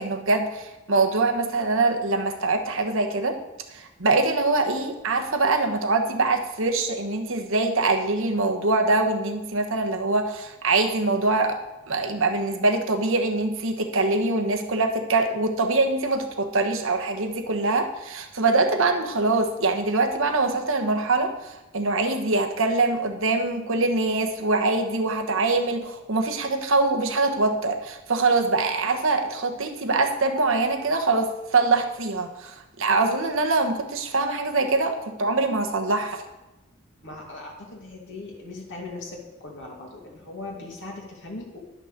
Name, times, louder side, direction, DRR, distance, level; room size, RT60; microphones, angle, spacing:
voice 1, 0.0-3.4 3.7-11.6 11.9-36.2, right 3 dB, 65° right, 4 dB, 1.2 m, -23 dB
voice 2, 37.0-41.6, left 2 dB, 60° left, -1 dB, 2.3 m, -39 dB
11.0 x 6.2 x 6.6 m, 1.0 s
head